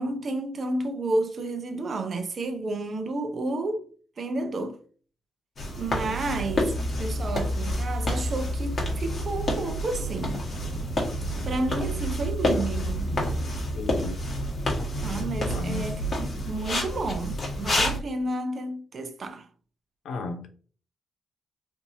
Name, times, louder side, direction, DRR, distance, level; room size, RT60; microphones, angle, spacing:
voice 1, 0.0-3.9 4.2-4.8 5.8-6.7 7.0-10.4 11.4-13.1 15.0-19.5, right 2 dB, 55° right, 0.7 m, -31 dB
sound 1, 5.6-18.0, equal, 50° left, 1.3 m, -29 dB
sound 2, 6.2-10.1 10.5-15.1, left 1 dB, 35° right, 1.5 m, -34 dB
voice 2, 13.7-14.2 15.4-15.9 20.0-20.5, left 3 dB, 75° left, 0.7 m, -34 dB
3.5 x 2.7 x 2.7 m
supercardioid pair, 55°, 0 cm